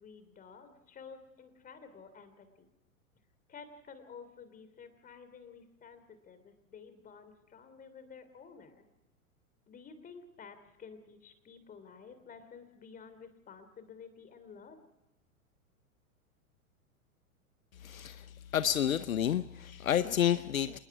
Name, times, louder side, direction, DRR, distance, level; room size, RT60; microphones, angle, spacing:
voice 1, 0.0-2.7 3.5-8.8 9.7-14.8, left 6 dB, 20° left, 11 dB, 3.2 m, -52 dB
voice 2, 17.8-18.3 18.5-20.8, left 10 dB, 70° left, 14 dB, 0.9 m, -30 dB
27.0 x 20.5 x 4.8 m, 0.98 s
figure-of-eight pair, 105°, 44 cm